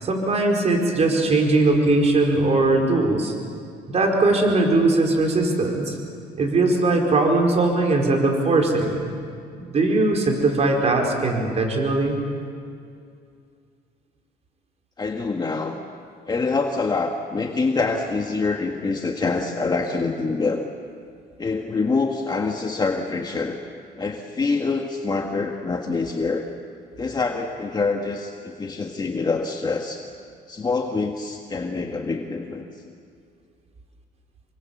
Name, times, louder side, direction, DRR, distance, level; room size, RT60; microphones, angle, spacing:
voice 1, 0.0-3.3 3.9-6.0 6.4-9.0 9.5-12.2, right 2 dB, 40° right, 1 dB, 4.8 m, -20 dB
voice 2, 15.0-15.8 16.3-20.7 21.4-23.6 24.0-26.5 27.0-30.0 30.5-32.9, left 4 dB, 25° left, 3 dB, 1.7 m, -25 dB
27.5 x 24.5 x 7.3 m, 2.4 s
cardioid pair, 110°, 17 cm